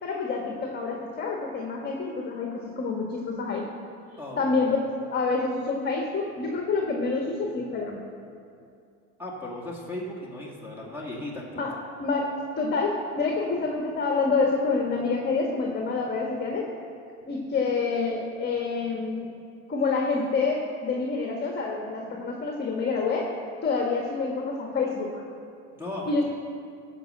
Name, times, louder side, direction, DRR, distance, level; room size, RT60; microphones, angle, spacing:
voice 1, 0.0-3.7 4.4-8.0 11.5-12.3 12.6-16.7 17.3-19.3 19.7-23.3 23.6-25.2 26.1-26.2, left 4 dB, 25° left, 1 dB, 1.5 m, -27 dB
voice 2, 4.2-4.5 9.2-11.6 25.7-26.2, left 1 dB, 5° right, -4 dB, 2.2 m, -36 dB
13.5 x 5.1 x 7.8 m, 2.5 s
hypercardioid pair, 90°, 37 cm